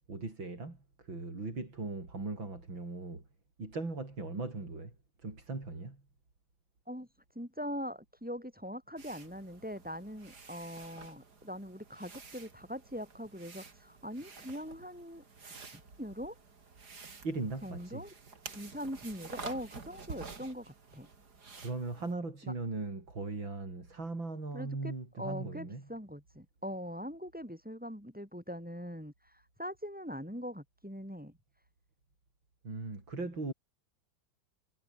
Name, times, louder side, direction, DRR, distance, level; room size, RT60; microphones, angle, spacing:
voice 1, 0.1-3.2 3.6-4.9 5.2-6.0 17.2-18.0 21.6-25.9 32.6-33.5, right 3 dB, 80° right, 6.7 m, -39 dB
voice 2, 7.3-16.3 17.6-18.1 18.5-21.1 22.4-22.5 24.5-31.4, equal, 5° right, 4.5 m, -42 dB
sound 1, 9.0-22.1, right 4 dB, 55° right, 3.4 m, -50 dB
omnidirectional pair, 2.1 m